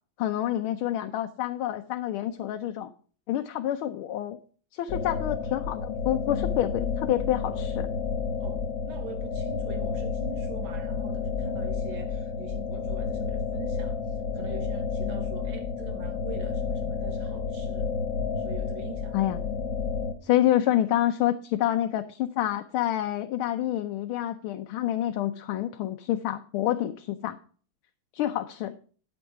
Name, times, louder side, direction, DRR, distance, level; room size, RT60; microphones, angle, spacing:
voice 1, 0.2-2.9 3.3-4.4 4.7-7.9 19.1-19.4 20.2-27.4 28.1-28.7, left 12 dB, 85° left, 1.5 m, -28 dB
sound 1, 4.9-20.1, left 5 dB, 65° left, 1.7 m, -31 dB
voice 2, 8.4-14.0 14.3-17.9 18.4-19.2, right 8 dB, 70° right, 1.6 m, -44 dB
9.0 x 8.6 x 4.7 m
omnidirectional pair, 2.3 m